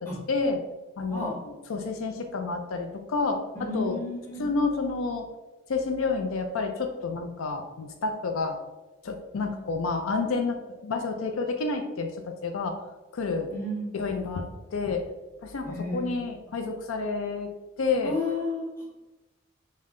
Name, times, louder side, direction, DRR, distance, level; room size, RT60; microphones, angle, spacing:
voice 1, 0.3-0.6 1.0-1.3 1.7-4.0 4.4-5.3 5.7-8.6 9.0-10.6 10.8-12.8 13.1-13.5 13.9-15.0 15.4-17.5 17.8-18.2, left 4 dB, 80° left, 4 dB, 0.4 m, -29 dB
voice 2, 3.5-4.5 9.3-9.7 13.5-13.9 15.6-16.2 18.0-18.8, left 2 dB, 10° left, -7 dB, 1.3 m, -32 dB
5.4 x 2.2 x 3.6 m, 1.1 s
head